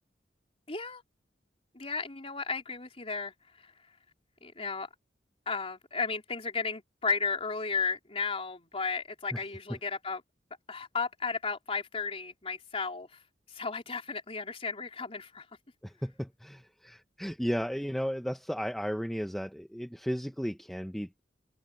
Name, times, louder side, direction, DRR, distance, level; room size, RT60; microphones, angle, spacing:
voice 1, 0.7-1.0 1.7-3.3 4.4-4.9 5.5-10.2 10.7-13.1 13.5-15.5, left 4 dB, 35° left, 3.8 m, -34 dB
voice 2, 15.8-21.2, equal, ahead, 0.9 m, -34 dB
head